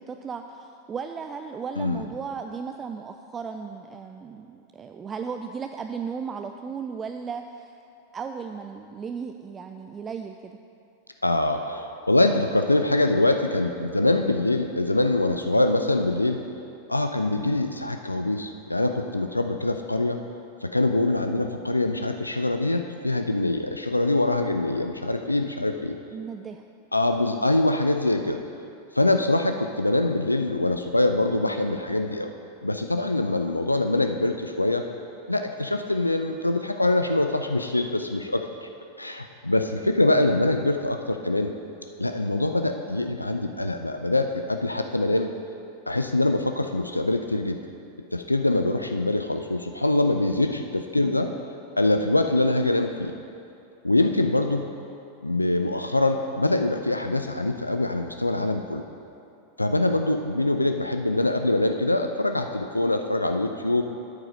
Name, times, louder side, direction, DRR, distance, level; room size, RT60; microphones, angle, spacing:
voice 1, 0.0-7.7 8.1-10.6 26.1-26.6 40.1-40.4 51.0-51.4, right 6 dB, 20° right, 6 dB, 0.4 m, -36 dB
voice 2, 11.2-16.4 16.9-20.2 20.6-26.0 26.9-28.4 28.9-32.3 32.6-34.8 35.3-38.7 39.0-41.5 42.0-45.3 45.9-47.6 48.1-51.3 51.8-53.1 53.8-54.7 55.2-58.8 59.6-63.8, left 2 dB, 85° left, 6 dB, 0.4 m, -24 dB
8.8 x 8.2 x 5.2 m, 2.6 s
figure-of-eight pair, 90°, 0 cm